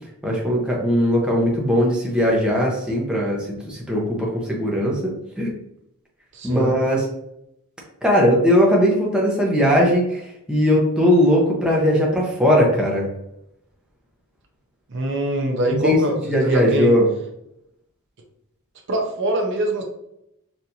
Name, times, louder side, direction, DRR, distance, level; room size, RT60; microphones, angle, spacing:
voice 1, 0.2-5.5 6.4-7.0 8.0-13.1 15.7-16.0 16.2-17.1, equal, 5° right, -3 dB, 0.7 m, -19 dB
voice 2, 6.3-6.7 14.9-16.9 18.9-19.8, right 1 dB, 55° right, 2 dB, 0.7 m, -23 dB
4.3 x 2.6 x 2.7 m, 0.80 s
head